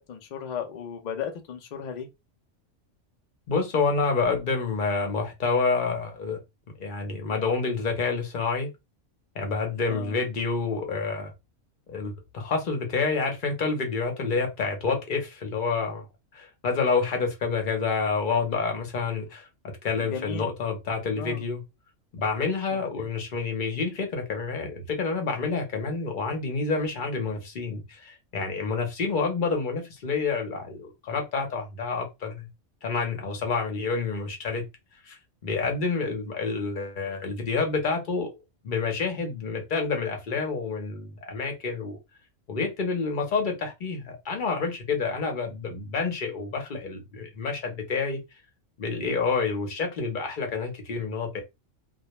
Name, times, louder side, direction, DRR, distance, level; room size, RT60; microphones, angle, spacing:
voice 1, 0.1-2.1 9.9-10.2 20.0-20.5 21.1-21.4 22.7-23.1, left 7 dB, 85° left, 0.3 m, -35 dB
voice 2, 3.5-6.4 6.8-8.7 9.3-11.3 11.9-16.1 16.3-19.5 19.8-21.6 22.1-32.5 32.8-34.6 35.0-38.3 38.6-42.0 42.5-48.2 48.8-51.4, left 4 dB, 50° left, 0.7 m, -28 dB
2.2 x 2.1 x 2.9 m
omnidirectional pair, 1.3 m